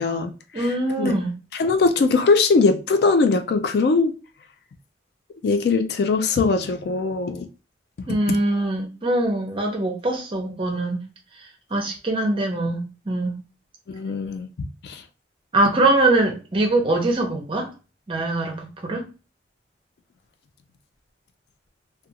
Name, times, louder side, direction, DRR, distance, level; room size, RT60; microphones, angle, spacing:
voice 1, 0.0-0.7 1.0-1.1 1.6-4.1 5.4-7.5 13.9-14.5 14.8-15.0, left 4 dB, 55° left, 0.3 m, -21 dB
voice 2, 0.5-1.3 8.1-11.0 11.4-11.5 11.7-13.4 15.5-17.7 18.1-19.1, right 2 dB, 30° right, 0.6 m, -22 dB
2.4 x 2.3 x 2.7 m
head